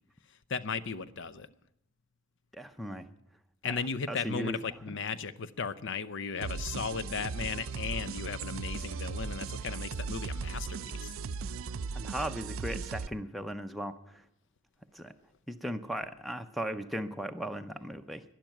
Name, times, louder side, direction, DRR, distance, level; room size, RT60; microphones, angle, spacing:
voice 1, 0.5-1.5 3.6-11.1, left 5 dB, 55° left, 15 dB, 0.6 m, -36 dB
voice 2, 2.5-3.1 4.1-4.6 11.9-14.2 14.9-15.1 15.5-18.2, right 1 dB, ahead, 9 dB, 0.6 m, -37 dB
sound 1, 6.4-13.1, right 4 dB, 65° right, 0.5 m, -37 dB
12.0 x 10.5 x 9.1 m, 0.80 s
head